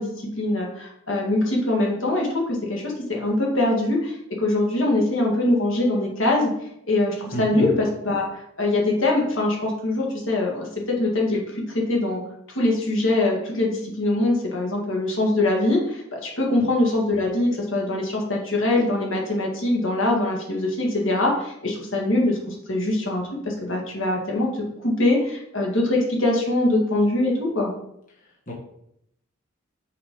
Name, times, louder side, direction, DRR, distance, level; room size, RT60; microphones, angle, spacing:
voice 1, 0.0-6.5 6.9-12.2 12.5-27.7, left 2 dB, 70° left, -1 dB, 2.0 m, -23 dB
voice 2, 7.3-7.7 16.6-16.7 28.5-28.6, left 1 dB, 40° left, -3 dB, 1.6 m, -30 dB
5.8 x 5.4 x 5.2 m, 0.75 s
head